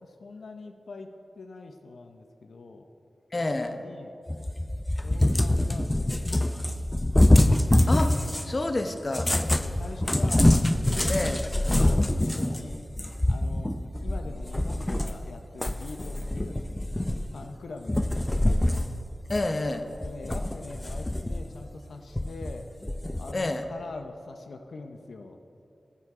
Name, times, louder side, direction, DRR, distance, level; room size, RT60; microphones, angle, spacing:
voice 1, 0.0-2.8 3.4-4.1 5.0-6.9 9.3-10.5 10.8-12.9 13.3-16.6 17.3-18.7 19.9-22.7 23.1-25.4, left 3 dB, 90° left, 5 dB, 0.7 m, -43 dB
voice 2, 3.3-3.8 7.9-8.2 8.4-9.3 11.1-11.4 19.3-19.8 23.3-23.7, left 2 dB, 45° left, 7 dB, 0.9 m, -28 dB
Cat, 4.3-8.5 9.1-15.3 15.6-17.5 17.9-18.9 19.3-19.4 20.0-21.5 22.2-23.3, left 1 dB, 20° left, 0.5 m, -25 dB
22.0 x 9.3 x 3.7 m, 2.8 s
wide cardioid pair, 60°, 0 cm